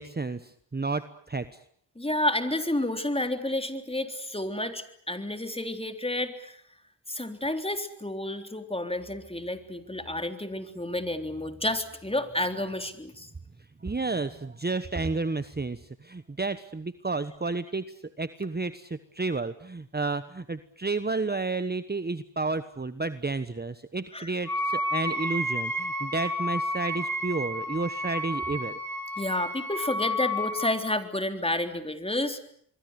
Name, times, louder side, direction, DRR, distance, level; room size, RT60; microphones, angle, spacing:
voice 1, 0.0-1.5 13.8-28.8, right 3 dB, 20° right, 12 dB, 1.2 m, -31 dB
voice 2, 2.0-6.6 7.1-13.3 24.1-24.3 29.2-32.4, left 1 dB, 15° left, 7 dB, 3.6 m, -30 dB
Wind instrument woodwind instrument, 24.5-30.8, left 1 dB, 50° left, 5.6 m, -31 dB
26.0 x 23.0 x 8.2 m, 0.65 s
cardioid pair, 55°, 44 cm